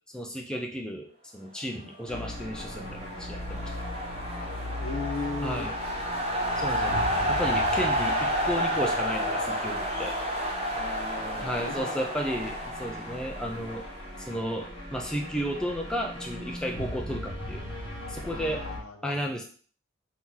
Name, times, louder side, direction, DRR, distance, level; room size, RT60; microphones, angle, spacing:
voice 1, 0.1-1.1 1.3-3.8 5.4-5.7 6.6-7.0 7.3-10.1 11.4-13.8 14.2-17.7 18.1-18.7 19.0-19.4, equal, 5° left, 1 dB, 0.3 m, -33 dB
sound 1, 2.1-18.8, equal, 25° left, 1.2 m, -38 dB
sound 2, 2.3-14.2, equal, 30° right, 0.6 m, -30 dB
voice 2, 4.8-5.7 10.7-11.9 18.2-19.3, left 3 dB, 90° left, 2 dB, 0.9 m, -37 dB
2.9 x 2.8 x 3.6 m, 0.43 s
head